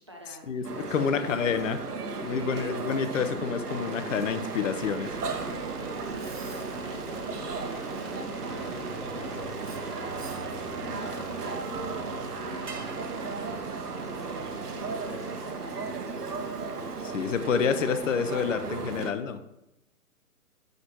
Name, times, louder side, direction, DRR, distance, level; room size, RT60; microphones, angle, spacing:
voice 1, 0.0-1.5 2.3-2.7 6.0-16.7, equal, 20° right, -1 dB, 0.5 m, -47 dB
sound 1, 0.6-19.1, right 4 dB, 85° right, 1.1 m, -35 dB
voice 2, 0.9-1.8 2.2-5.1 17.0-19.4, left 6 dB, 55° left, 10 dB, 0.7 m, -28 dB
sound 2, 3.6-17.1, right 5 dB, 55° right, 1.7 m, -48 dB
sound 3, 5.1-18.5, right 1 dB, ahead, 1.1 m, -45 dB
6.7 x 6.6 x 2.9 m, 0.90 s
hypercardioid pair, 150°, 45 cm